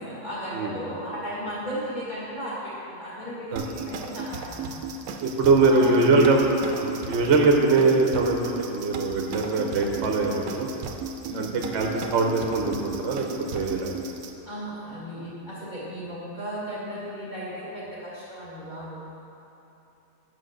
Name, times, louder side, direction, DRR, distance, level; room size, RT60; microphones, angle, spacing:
voice 1, 0.0-4.7 5.7-6.2 9.3-9.6 11.2-11.5 14.5-19.0, equal, 30° left, -9 dB, 1.9 m, -35 dB
sound 1, 3.6-14.3, right 4 dB, 90° right, 1.1 m, -35 dB
voice 2, 5.2-6.4 6.8-10.7 11.3-13.3 13.5-14.0, right 3 dB, 60° right, 1 dB, 0.9 m, -22 dB
5.8 x 5.3 x 6.5 m, 2.9 s
omnidirectional pair, 1.5 m